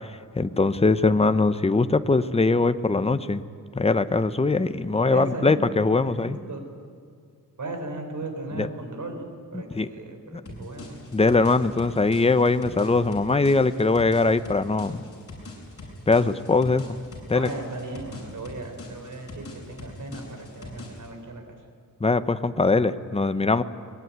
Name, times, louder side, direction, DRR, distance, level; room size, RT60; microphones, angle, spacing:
voice 1, 0.4-3.4 3.7-6.4 8.5-8.7 9.7-9.9 10.3-10.4 11.1-15.1 16.1-16.8 17.3-17.5 22.0-23.6, left 3 dB, 20° left, 11 dB, 0.8 m, -21 dB
voice 2, 5.0-5.6 6.0-6.6 7.6-9.2 9.5-11.0 17.3-21.6, right 2 dB, 60° right, 5 dB, 4.4 m, -36 dB
sound 1, 10.5-21.1, left 2 dB, 45° left, 7.2 m, -43 dB
24.0 x 21.5 x 9.4 m, 2.2 s
wide cardioid pair, 135°, 34 cm